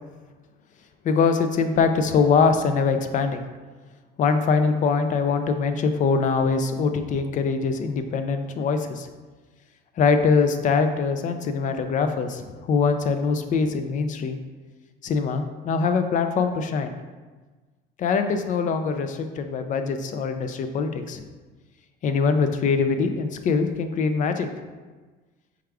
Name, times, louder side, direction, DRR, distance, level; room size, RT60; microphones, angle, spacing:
voice 1, 1.0-3.4 4.2-9.1 10.0-14.4 15.0-16.9 18.0-21.2 22.0-24.5, left 5 dB, 40° left, 8 dB, 0.4 m, -23 dB
4.8 x 2.2 x 4.7 m, 1.3 s
cardioid pair, 135°, 20 cm